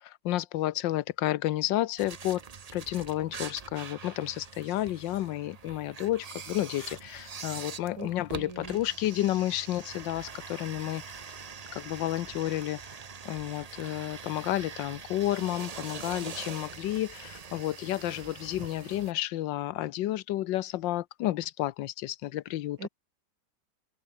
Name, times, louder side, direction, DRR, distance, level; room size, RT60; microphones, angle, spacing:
voice 1, 0.0-2.4 2.7-11.0 11.7-12.8 13.2-22.9, left 14 dB, 90° left, 1.4 m, -31 dB
sound 1, 2.0-19.1, right 6 dB, 65° right, 0.3 m, -44 dB
voice 2, 7.9-8.8 22.8-22.9, right 3 dB, 50° right, 4.5 m, -42 dB
omnidirectional pair, 2.0 m